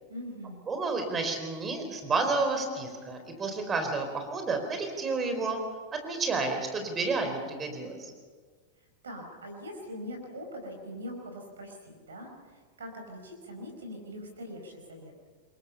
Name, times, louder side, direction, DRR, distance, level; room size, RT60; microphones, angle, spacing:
voice 1, 0.1-0.6 9.0-15.1, equal, 70° right, 4 dB, 4.8 m, -42 dB
voice 2, 0.7-5.6 5.9-8.1, right 3 dB, 20° right, 5 dB, 4.4 m, -30 dB
28.0 x 22.5 x 5.7 m, 1.5 s
figure-of-eight pair, 90°, 0 cm